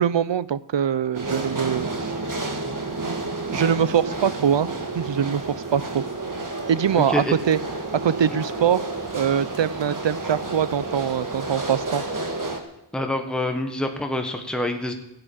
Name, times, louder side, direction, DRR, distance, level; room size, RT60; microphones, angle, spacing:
voice 1, 0.0-2.1 3.5-4.7 4.9-6.0 6.7-7.6 8.0-8.8 9.1-12.0, right 8 dB, 70° right, 18 dB, 0.6 m, -23 dB
sound 1, 1.1-12.6, right 2 dB, 45° right, 1.7 m, -30 dB
voice 2, 7.0-7.3 8.3-8.4 12.9-14.9, left 1 dB, ahead, 5 dB, 1.3 m, -26 dB
15.5 x 7.9 x 7.2 m, 0.89 s
wide cardioid pair, 55°, 46 cm